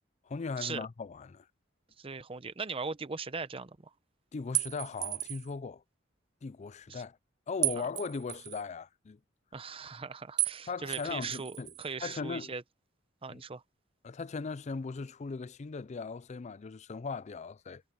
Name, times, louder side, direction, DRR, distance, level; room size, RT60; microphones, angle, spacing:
voice 1, 0.2-1.5 4.3-5.8 6.4-7.2 7.5-9.2 10.7-11.7 12.0-12.5 13.3-13.4 14.0-17.8, left 4 dB, 35° left, 0.4 m, -38 dB
voice 2, 2.0-3.8 6.9-7.0 7.8-7.9 9.5-12.6 13.2-13.6, right 4 dB, 30° right, 0.7 m, -39 dB
sound 1, 4.5-5.5 7.6-8.6 10.4-10.6 10.9-11.9, right 20 dB, 60° right, 0.4 m, -33 dB
head